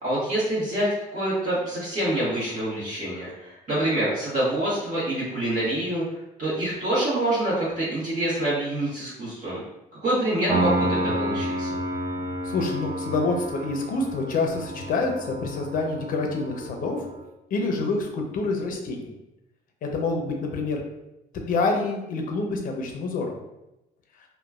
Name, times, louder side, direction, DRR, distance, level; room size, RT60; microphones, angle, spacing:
voice 1, 0.0-6.0 6.4-9.6 10.0-11.7, right 1 dB, 50° right, -9 dB, 1.3 m, -26 dB
Piano, 10.5-17.2, right 1 dB, 20° right, 0.7 m, -30 dB
voice 2, 12.4-17.0 17.5-19.1 19.8-20.8 21.5-23.4, left 3 dB, 60° left, 2 dB, 0.6 m, -27 dB
3.0 x 2.2 x 2.3 m, 0.92 s
cardioid pair, 95°, 16 cm